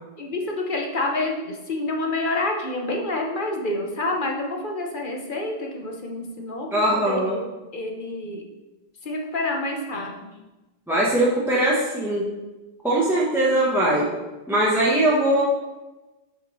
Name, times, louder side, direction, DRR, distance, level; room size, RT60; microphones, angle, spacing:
voice 1, 0.2-8.4 9.0-10.3, left 2 dB, 55° left, 1 dB, 1.1 m, -28 dB
voice 2, 6.7-7.4 10.9-12.2 12.8-14.1 14.5-15.4, right 1 dB, ahead, -7 dB, 1.1 m, -21 dB
6.3 x 5.4 x 4.1 m, 1.1 s
omnidirectional pair, 1.1 m